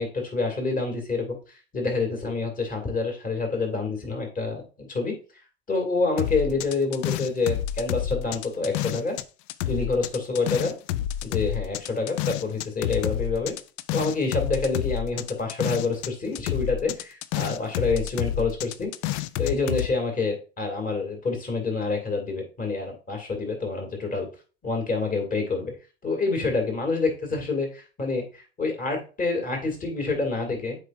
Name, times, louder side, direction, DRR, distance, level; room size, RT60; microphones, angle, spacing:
voice 1, 0.0-1.4 1.7-5.1 5.7-9.2 9.7-10.7 11.2-13.5 13.9-18.9 19.4-24.3 24.6-25.7 26.0-30.8, left 3 dB, 25° left, 2 dB, 2.5 m, -27 dB
sound 1, 6.2-9.2 9.5-16.1 16.3-19.9, left 12 dB, 45° left, 0.5 m, -29 dB
8.0 x 4.7 x 2.5 m, 0.34 s
hypercardioid pair, 100°, 32 cm